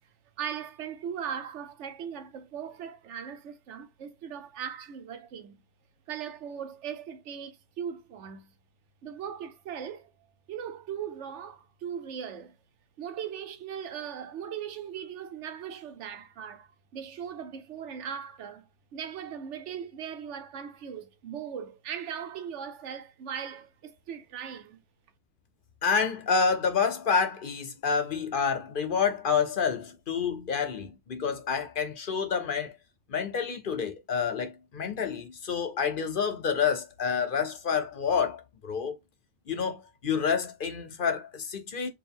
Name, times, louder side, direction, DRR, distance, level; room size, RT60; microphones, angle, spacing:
voice 1, 0.4-5.6 6.1-8.5 9.0-10.1 10.5-12.6 13.0-24.8, right 8 dB, 85° right, 1.0 m, -39 dB
voice 2, 25.8-32.7 33.1-38.9 39.5-41.9, left 6 dB, 55° left, 0.8 m, -28 dB
4.4 x 2.3 x 3.5 m
omnidirectional pair, 1.2 m